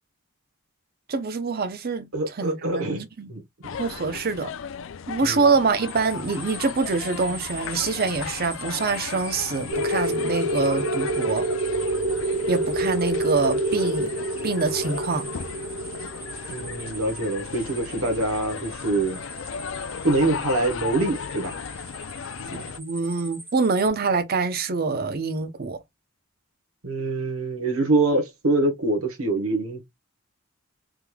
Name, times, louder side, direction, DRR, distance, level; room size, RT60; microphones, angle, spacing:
voice 1, 1.1-2.1 2.4-3.3 3.8-4.5 5.1-11.4 12.5-14.1 14.4-15.3 22.5-25.8, right 4 dB, 50° right, 0.7 m, -25 dB
voice 2, 2.1-3.0 3.3-3.4 5.2-5.5 16.5-19.2 20.0-21.5 26.8-29.8, right 2 dB, 85° right, 1.0 m, -24 dB
sound 1, 3.6-22.8, left 7 dB, 65° left, 0.4 m, -36 dB
sound 2, 5.9-23.9, right 1 dB, 10° right, 0.8 m, -42 dB
sound 3, 9.7-18.0, right 1 dB, 65° right, 1.0 m, -27 dB
3.6 x 3.1 x 2.2 m
head